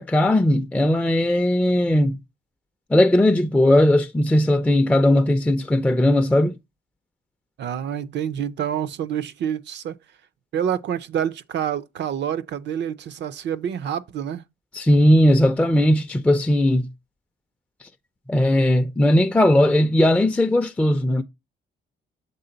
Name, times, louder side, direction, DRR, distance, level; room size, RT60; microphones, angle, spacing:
voice 1, 0.0-2.1 2.9-6.6 14.7-16.9 18.3-21.2, left 1 dB, 5° left, 0.4 m, -18 dB
voice 2, 7.6-10.0 10.5-14.4, right 9 dB, 60° right, 0.5 m, -27 dB
6.8 x 3.7 x 3.9 m
cardioid pair, 90°, 20 cm